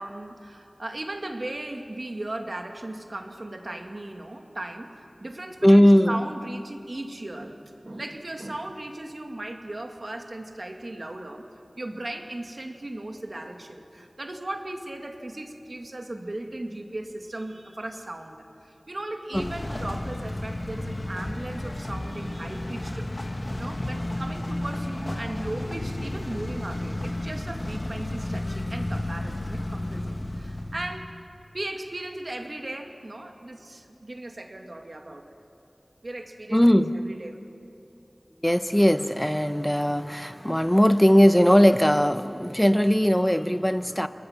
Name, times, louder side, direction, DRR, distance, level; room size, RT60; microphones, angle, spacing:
voice 1, 0.0-11.5 11.8-18.4 18.6-31.1 31.5-35.3 36.0-37.4, right 1 dB, 60° right, 4 dB, 2.1 m, -37 dB
voice 2, 5.6-6.2 19.3-19.5 36.5-36.9 38.4-44.1, equal, 10° left, 10 dB, 1.0 m, -19 dB
sound 1, 19.3-31.2, left 1 dB, 55° left, 1.6 m, -32 dB
29.5 x 21.0 x 5.9 m, 2.7 s
wide cardioid pair, 45°, 0 cm